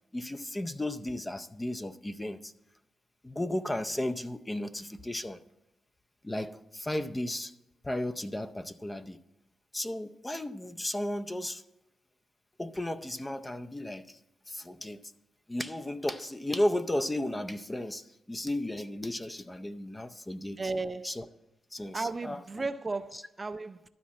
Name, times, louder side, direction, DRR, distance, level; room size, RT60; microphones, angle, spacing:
voice 1, 0.1-2.5 3.2-5.4 6.2-7.5 7.8-9.2 9.7-11.6 12.6-14.2 14.5-15.1 15.5-20.6 21.0-21.2 21.7-22.4 23.1-23.2, left 1 dB, 15° left, 0.6 m, -34 dB
voice 2, 20.6-21.2 21.9-23.9, right 3 dB, 30° right, 0.4 m, -35 dB
12.5 x 4.2 x 7.4 m
cardioid pair, 75°, 0 cm